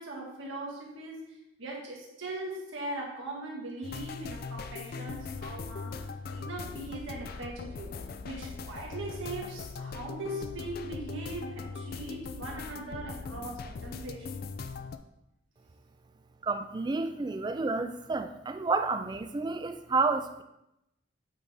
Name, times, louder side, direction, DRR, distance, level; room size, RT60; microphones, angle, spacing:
voice 1, 0.0-14.3, right 2 dB, 85° right, -2 dB, 1.7 m, -40 dB
sound 1, 3.8-15.0, left 4 dB, 50° left, 0.4 m, -40 dB
voice 2, 16.4-20.4, right 3 dB, 20° right, 9 dB, 0.3 m, -30 dB
8.4 x 4.0 x 3.5 m, 0.87 s
head